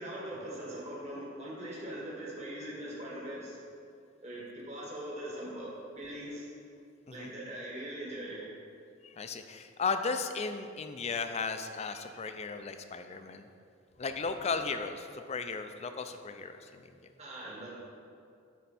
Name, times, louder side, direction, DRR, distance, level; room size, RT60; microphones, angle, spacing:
voice 1, 0.0-3.6 4.2-5.7 6.0-6.5 7.1-8.4 17.2-17.7, right 1 dB, 35° right, -6 dB, 1.7 m, -41 dB
voice 2, 9.0-13.5 14.0-16.8, left 4 dB, 35° left, 8 dB, 0.4 m, -35 dB
11.0 x 4.5 x 4.2 m, 2.4 s
head